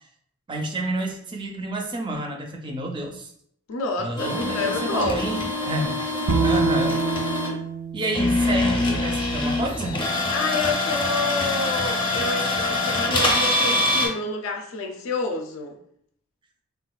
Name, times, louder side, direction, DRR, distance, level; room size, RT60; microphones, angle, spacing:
voice 1, 0.5-3.3 4.0-5.4 5.7-6.0 6.4-7.0 7.9-10.0, right 2 dB, 20° right, 2 dB, 0.4 m, -29 dB
voice 2, 3.7-5.3 5.8-5.9 10.3-15.8, left 3 dB, 70° left, 4 dB, 0.4 m, -29 dB
sound 1, 4.2-7.5 8.1-14.1, left 2 dB, 20° left, 0.6 m, -24 dB
Bowed string instrument, 6.3-9.5, right 4 dB, 85° right, 0.4 m, -26 dB
3.7 x 2.3 x 2.2 m, 0.66 s
head